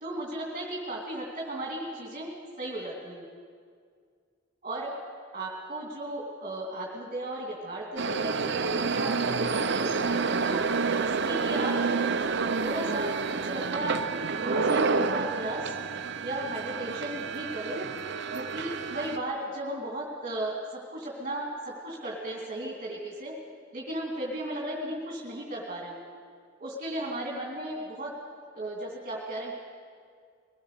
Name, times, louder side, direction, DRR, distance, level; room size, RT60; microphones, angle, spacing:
voice 1, 0.0-3.2 4.6-4.9 5.3-9.9 10.4-10.6 11.0-12.0 12.5-14.0 14.4-15.7 16.2-17.9 18.3-23.3 23.7-26.0 26.6-28.1 28.5-29.5, right 1 dB, 40° right, -2 dB, 2.6 m, -35 dB
sound 1, 8.0-19.2, right 4 dB, 65° right, 0.8 m, -29 dB
22.0 x 18.0 x 6.7 m, 2.1 s
head